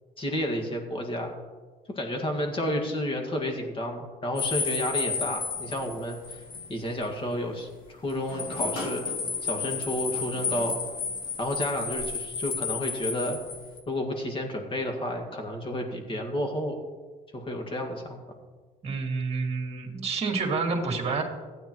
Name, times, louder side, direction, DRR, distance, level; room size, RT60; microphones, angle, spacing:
voice 1, 0.2-1.3 1.9-6.4 6.7-9.1 9.4-10.8 11.4-13.4 13.9-16.8 17.3-18.2, left 1 dB, 30° left, 3 dB, 1.8 m, -31 dB
sound 1, 4.4-6.7 7.0-7.1 8.1-13.8, left 5 dB, 55° left, 1.7 m, -32 dB
sound 2, 5.3-6.6 8.0-11.6, left 2 dB, 85° left, 3.1 m, -42 dB
voice 2, 18.8-21.2, right 4 dB, 35° right, 0 dB, 2.2 m, -28 dB
15.5 x 9.1 x 3.1 m, 1.4 s
cardioid pair, 110°, 17 cm